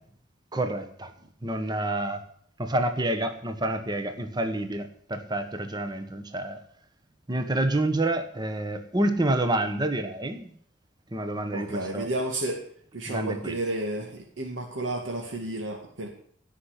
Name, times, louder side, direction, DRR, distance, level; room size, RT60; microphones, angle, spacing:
voice 1, 0.5-1.1 1.4-2.2 2.6-6.6 7.3-10.5 11.1-12.1 13.1-13.6, right 1 dB, 20° right, 7 dB, 1.2 m, -28 dB
voice 2, 11.5-12.6 12.9-16.1, right 1 dB, 80° right, 1 dB, 2.0 m, -32 dB
17.0 x 5.9 x 10.0 m, 0.62 s
head